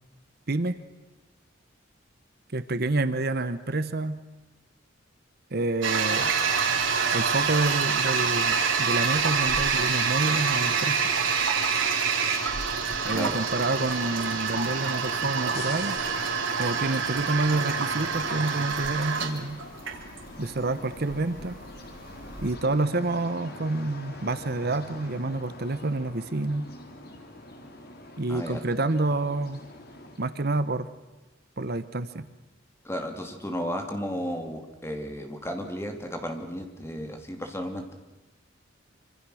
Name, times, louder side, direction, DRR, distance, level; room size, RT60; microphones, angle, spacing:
voice 1, 0.5-0.8 2.5-4.2 5.5-6.3 7.1-11.0 13.0-16.0 16.6-19.6 20.4-21.6 22.4-26.7 28.2-29.6 30.2-30.9 31.6-32.3, right 2 dB, 55° right, 12 dB, 1.0 m, -28 dB
Toilet flush, 5.8-22.5, right 5 dB, 80° right, 3.2 m, -26 dB
sound 1, 12.5-30.5, left 1 dB, 55° left, 3.4 m, -45 dB
voice 2, 28.3-28.6 32.8-37.9, equal, 15° left, 4 dB, 2.7 m, -33 dB
26.0 x 26.0 x 6.4 m, 1.1 s
head